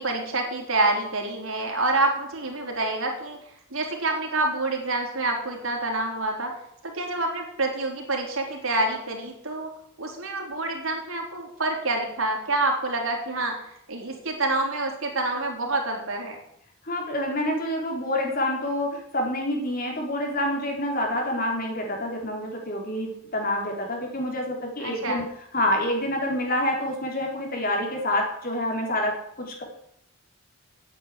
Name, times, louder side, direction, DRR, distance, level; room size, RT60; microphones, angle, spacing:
voice 1, 0.0-3.4 3.7-6.5 6.8-9.7 10.0-16.4 24.8-25.2, right 2 dB, 70° right, 1 dB, 3.8 m, -27 dB
voice 2, 16.9-25.2 25.5-29.6, left 1 dB, 45° left, 1 dB, 3.6 m, -27 dB
9.5 x 9.0 x 9.9 m, 0.76 s
head